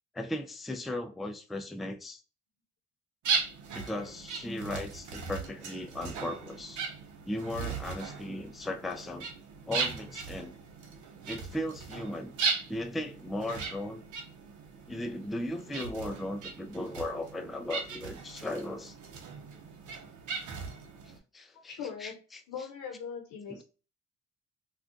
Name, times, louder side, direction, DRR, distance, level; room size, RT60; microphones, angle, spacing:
voice 1, 0.1-2.2 3.7-6.8 7.3-9.2 9.7-10.5 11.2-12.3 12.7-14.0 14.9-19.0 21.1-22.4 23.5-23.6, left 1 dB, ahead, 0.3 m, -37 dB
sound 1, 3.2-21.2, right 5 dB, 75° right, 0.7 m, -38 dB
voice 2, 21.7-22.1 22.5-23.6, left 7 dB, 85° left, 0.8 m, -40 dB
3.5 x 2.3 x 2.5 m
cardioid pair, 90°, 30 cm